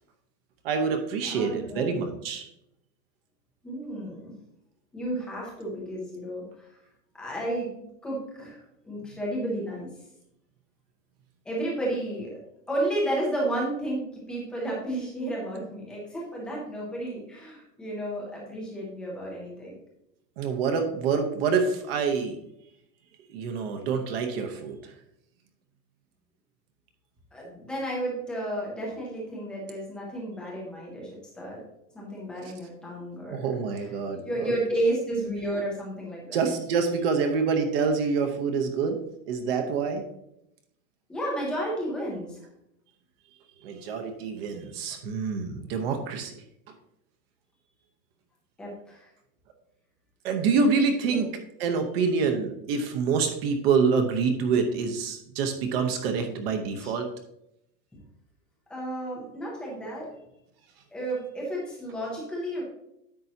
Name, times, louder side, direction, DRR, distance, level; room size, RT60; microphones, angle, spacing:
voice 1, 0.6-2.5 20.4-22.4 23.3-24.9 33.3-34.5 36.3-39.0 39.3-40.0 43.6-46.3 50.2-57.1, right 5 dB, 35° right, 6 dB, 0.9 m, -26 dB
voice 2, 1.2-1.9 3.6-4.3 4.9-6.7 7.1-8.6 8.8-9.9 11.4-12.3 12.7-19.7 27.3-31.1 31.4-31.6 31.9-33.4 33.7-36.4 41.1-42.4 48.6-49.1 51.1-51.2 56.8-56.9 58.7-60.1 60.9-62.6, right 1 dB, ahead, -5 dB, 0.4 m, -32 dB
10.5 x 7.5 x 2.8 m, 0.80 s
supercardioid pair, 175°, 49 cm